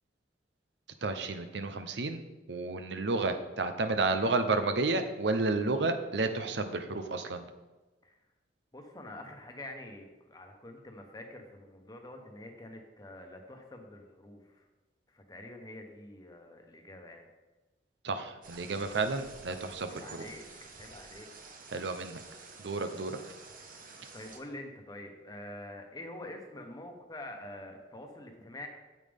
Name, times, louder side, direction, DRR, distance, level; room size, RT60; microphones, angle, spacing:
voice 1, 1.0-2.2 2.5-7.4 18.0-20.3 21.7-22.2 22.6-23.2, right 3 dB, 70° right, 8 dB, 0.7 m, -31 dB
voice 2, 8.7-14.7 15.1-17.3 19.9-20.5 20.8-21.6 24.1-28.7, left 1 dB, 20° left, 3 dB, 1.1 m, -46 dB
sound 1, 18.4-24.4, right 4 dB, 50° right, 1.0 m, -50 dB
8.9 x 8.4 x 3.5 m, 1.1 s
head